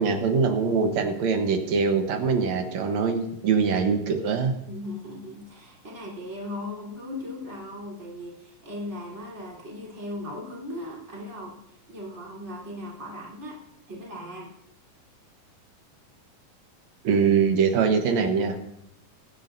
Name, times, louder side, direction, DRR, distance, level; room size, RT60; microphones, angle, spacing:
voice 1, 0.0-4.5 17.0-18.6, right 5 dB, 65° right, 6 dB, 2.1 m, -23 dB
voice 2, 4.7-13.6 13.9-14.6, left 1 dB, 20° right, -4 dB, 3.7 m, -38 dB
22.0 x 10.5 x 2.6 m, 0.75 s
omnidirectional pair, 4.0 m